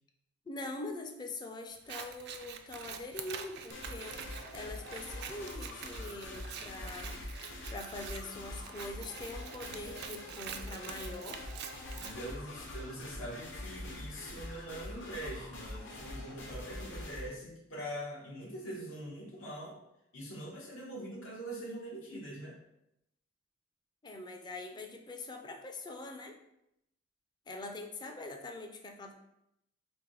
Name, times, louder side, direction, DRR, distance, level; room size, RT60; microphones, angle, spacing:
voice 1, 0.5-7.2 7.7-11.4 24.0-26.4 27.5-29.1, left 2 dB, 20° left, 4 dB, 0.4 m, -43 dB
Scissors, 1.7-12.1, right 8 dB, 55° right, 0.3 m, -46 dB
sound 1, 3.7-17.3, left 1 dB, 65° left, 0.8 m, -44 dB
voice 2, 11.9-19.8 20.1-22.6, right 1 dB, 85° left, -4 dB, 1.1 m, -43 dB
3.4 x 2.7 x 3.7 m, 0.81 s
head